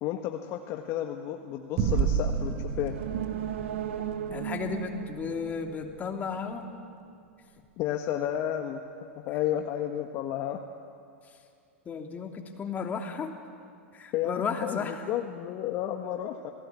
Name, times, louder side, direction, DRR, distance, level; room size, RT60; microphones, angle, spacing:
voice 1, 0.0-2.9 4.0-4.1 7.8-8.8 9.2-10.6 14.1-16.5, left 11 dB, 45° left, 4 dB, 1.6 m, -32 dB
sound 1, 1.8-6.6, right 6 dB, 45° right, 2.3 m, -32 dB
sound 2, 2.8-6.5 6.9-7.0, right 10 dB, 80° right, 1.6 m, -36 dB
voice 2, 4.3-6.7 11.2-11.3 11.8-13.3 13.9-15.0, left 6 dB, 25° left, 3 dB, 3.0 m, -34 dB
27.5 x 18.5 x 8.7 m, 2.4 s
hypercardioid pair, 110°, 7 cm